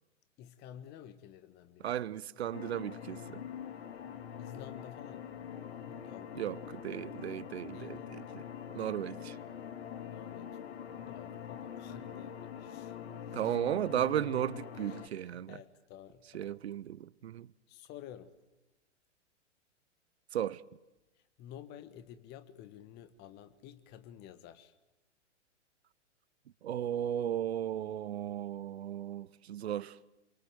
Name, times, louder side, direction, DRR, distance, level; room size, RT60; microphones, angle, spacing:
voice 1, 0.4-2.0 2.5-2.6 4.4-5.4 5.8-6.8 7.7-8.2 10.1-13.0 13.3-13.6 14.7-16.6 17.7-18.3 21.4-24.7, left 10 dB, 25° left, 1.5 m, -52 dB
voice 2, 1.8-3.4 6.3-8.4 8.7-9.4 13.3-15.6 16.3-17.5 20.3-20.6 26.6-30.0, right 11 dB, 60° right, 0.9 m, -35 dB
sound 1, 2.5-15.1, left 8 dB, 55° left, 2.0 m, -44 dB
27.0 x 23.5 x 7.8 m
figure-of-eight pair, 115°, 37 cm